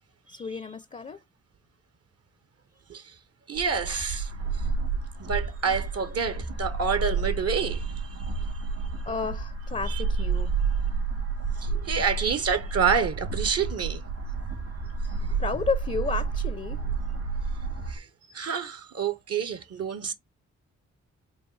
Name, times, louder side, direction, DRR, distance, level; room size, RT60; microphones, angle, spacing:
voice 1, 0.3-1.2 9.1-10.5 15.4-16.8, left 5 dB, 25° left, 0.5 m, -31 dB
voice 2, 3.5-4.3 5.2-8.1 9.9-10.0 11.6-14.0 15.0-15.1 17.9-18.1 18.3-20.1, right 6 dB, 50° right, 0.6 m, -28 dB
sound 1, 3.5-18.0, right 4 dB, 80° right, 1.9 m, -30 dB
4.6 x 2.5 x 3.1 m
supercardioid pair, 45°, 31 cm